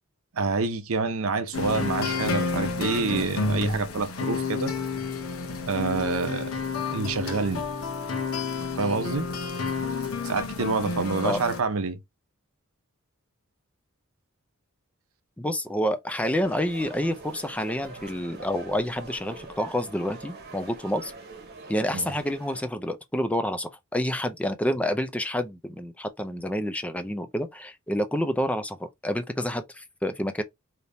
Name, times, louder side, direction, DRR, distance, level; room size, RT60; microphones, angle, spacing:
voice 1, 0.3-4.7 5.7-6.6 6.9-7.7 8.8-9.2 10.2-12.0 21.9-22.1, right 4 dB, 75° right, 0.6 m, -27 dB
sound 1, 1.5-11.6, left 4 dB, 75° left, 0.8 m, -30 dB
voice 2, 15.4-21.1 21.7-28.8 29.0-30.4, equal, 5° left, 0.4 m, -28 dB
sound 2, 16.4-22.6, right 3 dB, 50° right, 1.0 m, -44 dB
3.4 x 2.8 x 2.5 m
head